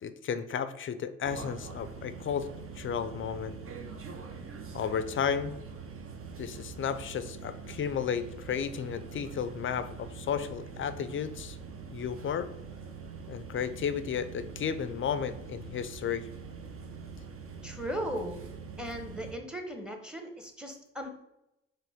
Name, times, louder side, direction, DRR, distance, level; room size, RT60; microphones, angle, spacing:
voice 1, 0.0-2.5 2.7-3.6 4.7-5.5 6.4-11.6 11.9-12.5 13.3-16.3, left 7 dB, 40° left, 12 dB, 0.5 m, -33 dB
sound 1, 1.2-19.3, right 5 dB, 40° right, 0.8 m, -44 dB
voice 2, 17.6-18.4 18.8-21.1, equal, 5° right, 4 dB, 1.0 m, -37 dB
4.8 x 3.1 x 3.5 m, 0.86 s
hypercardioid pair, 45°, 33 cm